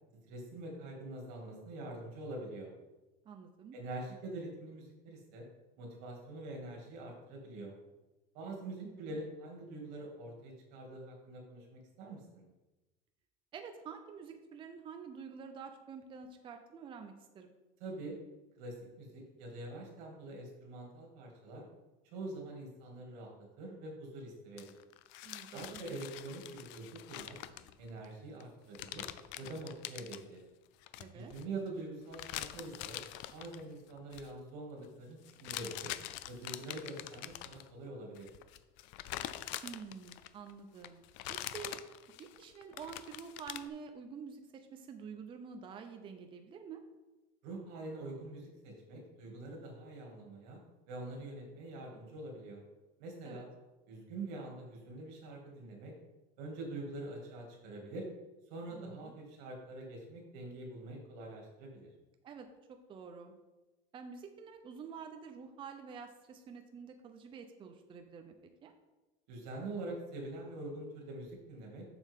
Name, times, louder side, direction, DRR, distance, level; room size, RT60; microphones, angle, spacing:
voice 1, 0.3-2.7 3.7-5.5 5.8-7.7 8.3-12.4 17.8-18.2 18.6-21.7 22.1-24.7 25.5-27.4 27.8-29.0 29.4-30.4 31.1-33.0 33.3-35.9 36.3-38.3 47.4-50.6 50.9-52.6 53.0-53.5 53.9-55.9 56.4-58.1 58.5-61.9 69.3-71.9, right 2 dB, 85° right, 0 dB, 2.3 m, -45 dB
voice 2, 3.2-3.8 8.9-9.1 13.5-17.5 25.2-25.8 31.0-31.3 39.6-41.0 41.3-41.9 42.2-46.8 53.2-53.4 58.7-59.1 62.2-63.3 63.9-68.3 68.6-68.7, right 6 dB, 25° right, 5 dB, 0.5 m, -48 dB
sound 1, 24.6-28.1 28.4-28.5 28.7-30.2 30.8-31.4 32.1-33.6 34.0-34.3 35.3-37.7 38.2-40.5 40.8-43.7, left 14 dB, 60° left, 0.4 m, -44 dB
7.0 x 6.5 x 3.6 m, 1.1 s
cardioid pair, 155°, 21 cm